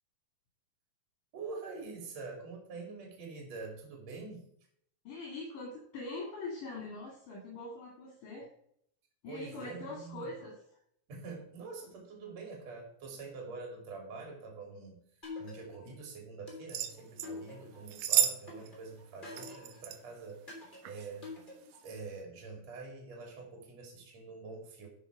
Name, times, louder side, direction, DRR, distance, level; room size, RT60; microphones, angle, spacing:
voice 1, 1.3-4.5 9.3-10.3 11.1-15.0 15.4-20.5 20.8-21.3 21.8-24.9, right 4 dB, 55° right, 2 dB, 3.6 m, -45 dB
voice 2, 5.1-8.5 9.2-10.6, left 2 dB, 70° left, -2 dB, 3.8 m, -43 dB
sound 1, 15.2-16.0 16.5-17.9 18.5-19.9 20.5-21.9, left 3 dB, 15° left, 3.0 m, -47 dB
sound 2, 16.7-17.3 17.9-18.4 18.7-18.8 19.4-20.0 20.8-21.1 21.7-21.8, right 10 dB, 75° right, 2.0 m, -31 dB
11.0 x 6.5 x 4.8 m, 0.68 s
omnidirectional pair, 3.7 m